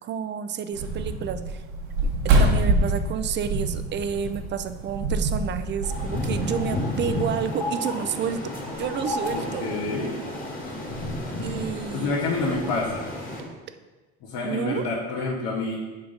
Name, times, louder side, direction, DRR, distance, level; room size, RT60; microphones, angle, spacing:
voice 1, 0.0-1.6 2.0-8.5 8.8-9.7 11.4-12.2 14.4-14.9, right 7 dB, 35° right, 11 dB, 0.5 m, -30 dB
sound 1, 0.7-6.7, right 2 dB, 75° right, 1.4 m, -25 dB
sound 2, 5.8-13.4, left 1 dB, 25° left, 2.1 m, -31 dB
voice 2, 9.3-10.1 11.9-13.1 14.2-15.8, left 3 dB, 65° left, -5 dB, 1.5 m, -28 dB
7.1 x 4.1 x 5.1 m, 1.2 s
supercardioid pair, 100°, 34 cm